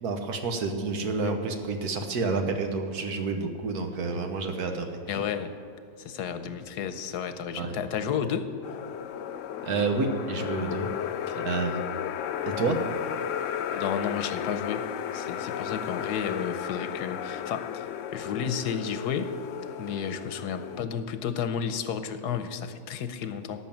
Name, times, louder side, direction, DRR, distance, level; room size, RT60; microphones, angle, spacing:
voice 1, 0.0-5.2 7.5-7.7 9.6-10.9 11.4-11.8 12.6-12.8, right 4 dB, 70° right, 5 dB, 1.6 m, -29 dB
voice 2, 5.1-5.5 6.0-8.5 11.3-11.4 13.7-14.9 15.1-17.8 18.1-19.3 19.8-23.6, left 7 dB, 90° left, 10 dB, 1.4 m, -32 dB
sound 1, 8.6-20.8, left 9 dB, 70° left, 0.8 m, -34 dB
13.0 x 6.2 x 8.9 m, 2.6 s
omnidirectional pair, 1.7 m